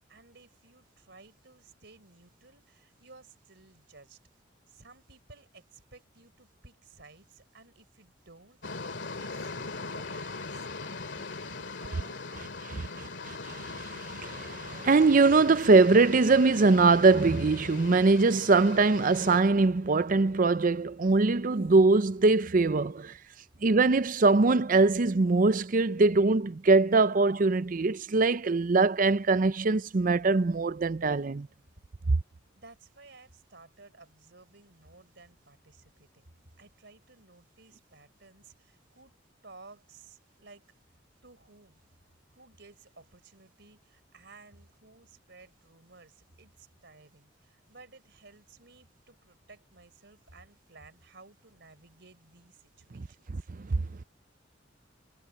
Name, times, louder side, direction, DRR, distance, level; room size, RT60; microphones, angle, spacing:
voice 1, 0.1-4.2 4.7-13.3 32.5-39.1 39.4-40.7 41.2-41.8 42.3-53.4, right 3 dB, 60° right, 4.3 m, -56 dB
sound 1, 8.6-19.4, left 3 dB, 65° left, 2.4 m, -40 dB
voice 2, 13.7-23.2 23.6-31.5 53.5-53.8, right 3 dB, 45° right, 0.5 m, -22 dB
head